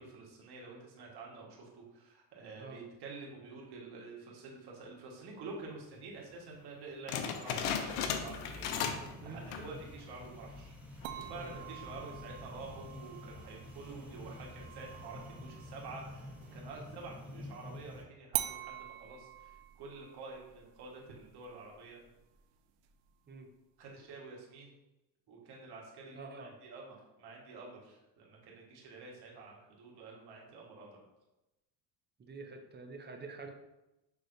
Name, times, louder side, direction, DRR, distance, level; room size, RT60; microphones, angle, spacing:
voice 1, 0.0-8.7 9.2-22.0 23.8-24.7 25.3-31.0, right 3 dB, 60° right, -2 dB, 1.5 m, -49 dB
sound 1, 7.1-9.1 9.4-9.8 10.3-10.4 11.0-11.4, left 7 dB, 80° left, 0.7 m, -36 dB
sound 2, 7.6-18.0, left 1 dB, 5° right, 1.1 m, -49 dB
sound 3, 11.0-16.6 18.3-23.3, right 14 dB, 75° right, 0.5 m, -45 dB
voice 2, 26.1-26.6 32.2-33.5, right 3 dB, 25° right, 4 dB, 0.6 m, -47 dB
6.1 x 3.2 x 2.6 m, 0.97 s
supercardioid pair, 90°, 45 cm